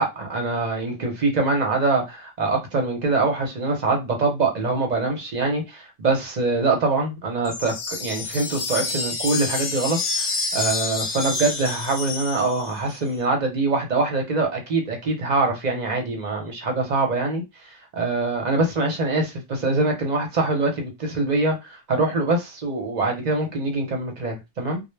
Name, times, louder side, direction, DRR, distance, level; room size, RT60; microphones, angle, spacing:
voice 1, 0.0-17.4 17.9-24.8, right 3 dB, 45° right, 0.7 m, -24 dB
sound 1, 7.4-12.9, left 3 dB, 65° left, 1.0 m, -28 dB
2.2 x 2.1 x 3.1 m
omnidirectional pair, 1.2 m